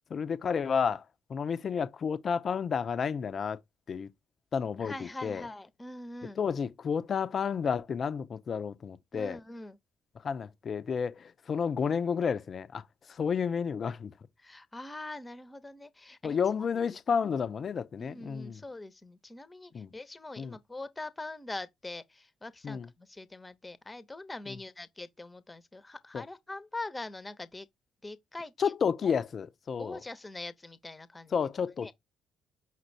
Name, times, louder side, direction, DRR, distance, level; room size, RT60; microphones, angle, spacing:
voice 1, 0.1-1.0 1.3-3.6 3.9-4.1 4.5-5.4 6.4-9.4 10.2-12.8 13.1-14.1 16.2-18.6 19.7-19.9 20.4-20.6 22.6-22.9 26.1-26.2 28.6-30.0 31.3-31.9, left 6 dB, 45° left, 0.6 m, -31 dB
voice 2, 4.8-6.4 9.1-9.8 14.4-16.4 16.8-17.4 18.0-27.7 28.0-28.7 29.8-31.5 31.8-31.9, left 2 dB, 20° left, 0.9 m, -43 dB
5.7 x 2.4 x 3.2 m
figure-of-eight pair, 45°, 0 cm